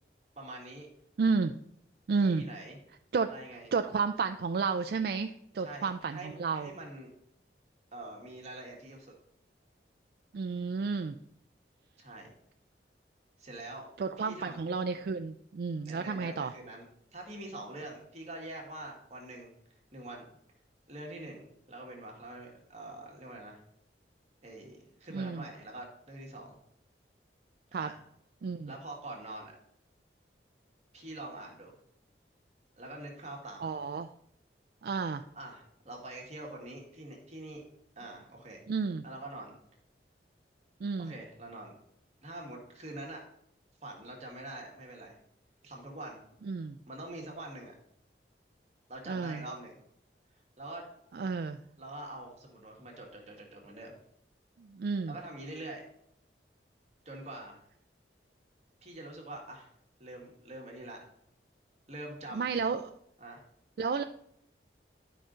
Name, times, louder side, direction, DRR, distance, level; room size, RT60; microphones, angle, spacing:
voice 1, 0.3-0.9 2.2-2.8 3.3-3.7 5.6-7.1 7.9-9.1 12.0-12.3 13.4-13.9 14.2-14.6 15.8-16.8 17.1-19.5 19.9-20.4 20.9-23.6 24.4-26.6 27.8-28.0 28.7-29.5 30.9-31.8 32.8-33.7 35.3-37.6 37.9-38.6 39.0-39.6 41.0-41.7 42.2-43.2 43.8-45.2 45.6-46.2 46.9-47.7 48.9-49.8 50.6-50.8 51.8-54.0 55.1-55.8 57.0-57.6 58.8-59.7 60.0-61.0 61.9-62.6 63.2-63.4, right 1 dB, 40° right, 0 dB, 1.6 m, -45 dB
voice 2, 1.2-1.5 2.1-2.4 3.1-3.3 3.7-6.7 10.3-11.2 14.0-16.5 25.1-25.5 27.7-27.9 28.4-28.7 33.6-34.1 34.8-35.2 38.7-39.0 40.8-41.1 46.4-46.8 49.1-49.4 51.1-51.6 54.6-55.2 62.3-62.9 63.8-64.0, right 4 dB, 55° right, 8 dB, 0.3 m, -31 dB
11.0 x 5.1 x 3.8 m, 0.73 s
head